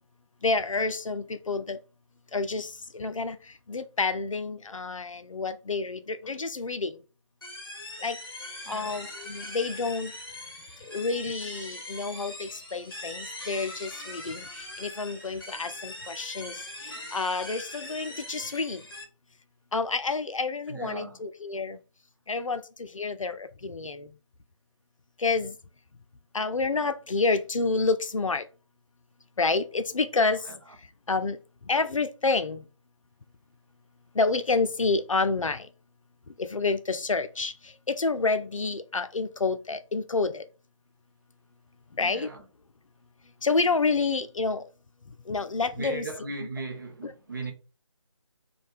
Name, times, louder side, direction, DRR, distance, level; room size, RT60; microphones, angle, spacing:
voice 1, 0.4-1.8 2.3-2.7 2.9-3.4 3.7-6.9 8.0-8.2 8.7-10.1 10.9-14.4 14.8-16.5 16.9-18.8 19.7-21.8 22.3-24.1 25.2-25.5 26.3-28.4 29.4-30.4 31.1-31.4 31.7-32.6 34.2-35.7 36.4-37.5 37.9-40.4 42.0-42.3 43.4-44.6 45.3-46.1 47.0-47.1, left 3 dB, 80° left, 0.4 m, -28 dB
sound 1, 7.4-19.0, left 1 dB, 45° left, 0.7 m, -41 dB
voice 2, 8.6-9.0 20.7-21.2 30.5-30.6 42.0-42.4 45.8-47.5, right 2 dB, 40° right, 0.6 m, -37 dB
2.6 x 2.2 x 3.2 m
figure-of-eight pair, 160°, 17 cm